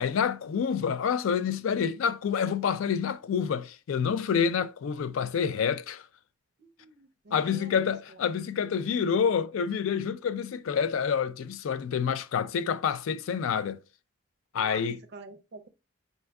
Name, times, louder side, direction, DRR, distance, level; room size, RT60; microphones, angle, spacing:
voice 1, 0.0-6.0 7.3-13.8 14.5-15.0, left 7 dB, 80° left, 0.3 m, -28 dB
voice 2, 6.6-7.8 14.6-14.8 15.1-15.7, right 3 dB, 55° right, 0.5 m, -47 dB
4.2 x 2.2 x 3.5 m
head